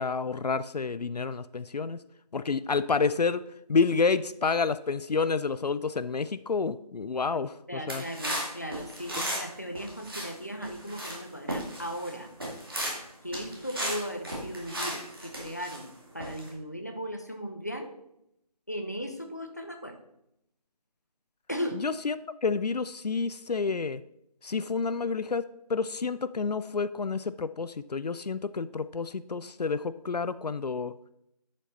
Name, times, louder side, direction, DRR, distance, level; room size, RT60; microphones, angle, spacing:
voice 1, 0.0-2.0 2.3-3.4 3.7-8.0 21.8-22.2 22.4-24.0 24.4-30.9, left 4 dB, 75° left, 15 dB, 0.4 m, -29 dB
voice 2, 7.7-12.3 13.2-17.9 18.7-20.0 21.5-21.8, equal, 25° left, 5 dB, 0.6 m, -37 dB
sound 1, 7.9-9.5 9.7-10.3 10.6-11.2 11.5-12.1 12.4-13.0 13.3-15.8 16.2-16.5, equal, 35° right, 2.2 m, -35 dB
10.5 x 5.2 x 4.2 m, 0.78 s
figure-of-eight pair, 175°, 21 cm